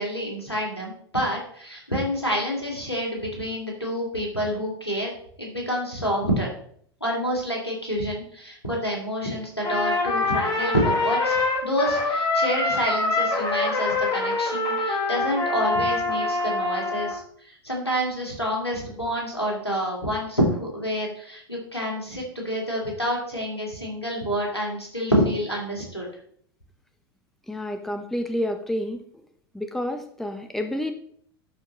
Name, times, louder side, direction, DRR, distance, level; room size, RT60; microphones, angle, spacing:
voice 1, 0.0-5.1 5.4-6.5 7.0-26.1, equal, 90° left, -2 dB, 2.4 m, -28 dB
Trumpet, 9.6-17.2, left 2 dB, 30° left, 2.3 m, -25 dB
voice 2, 27.5-29.0 29.5-30.9, left 1 dB, ahead, 7 dB, 0.7 m, -29 dB
11.5 x 4.6 x 3.0 m, 0.62 s
figure-of-eight pair, 85°, 13 cm